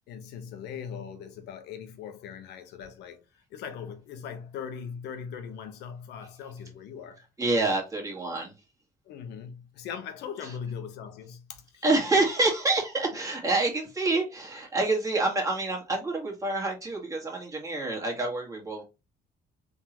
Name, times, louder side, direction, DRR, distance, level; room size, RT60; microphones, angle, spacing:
voice 1, 0.1-3.2 3.5-7.2 9.1-11.8, left 7 dB, 80° left, 1.1 m, -40 dB
voice 2, 7.4-8.5 10.4-10.6 11.8-18.8, right 2 dB, 20° right, 1.9 m, -27 dB
3.8 x 3.7 x 3.0 m
cardioid pair, 110°, 17 cm